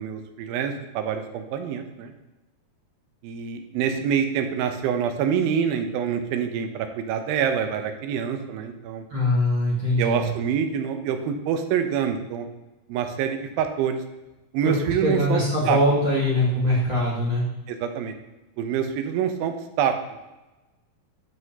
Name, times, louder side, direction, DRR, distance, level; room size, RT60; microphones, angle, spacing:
voice 1, 0.0-2.1 3.2-9.0 10.0-12.5 12.9-14.0 14.5-15.8 17.7-18.1 18.6-20.2, right 8 dB, 80° right, 6 dB, 2.5 m, -26 dB
voice 2, 9.1-10.3 14.6-14.7 15.0-17.4, left 1 dB, 45° right, -7 dB, 1.8 m, -22 dB
11.0 x 5.5 x 2.8 m, 1.1 s
omnidirectional pair, 4.2 m